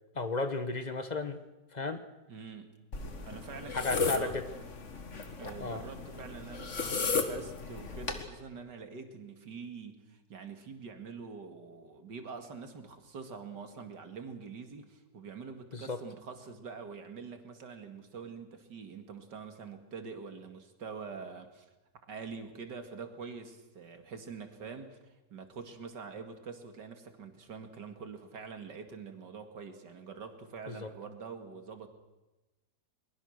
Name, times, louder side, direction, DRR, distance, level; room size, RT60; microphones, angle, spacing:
voice 1, 0.1-1.4 1.7-2.0 3.7-4.4 5.6-5.8 15.7-16.0 30.7-30.9, left 3 dB, 30° left, 10 dB, 1.1 m, -34 dB
voice 2, 2.3-2.7 3.3-4.3 5.4-21.7 22.1-31.9, right 5 dB, 80° right, 6 dB, 2.7 m, -45 dB
sound 1, 2.9-8.2, left 4 dB, 45° left, 2.0 m, -35 dB
23.0 x 21.5 x 6.5 m, 1.1 s
omnidirectional pair, 1.8 m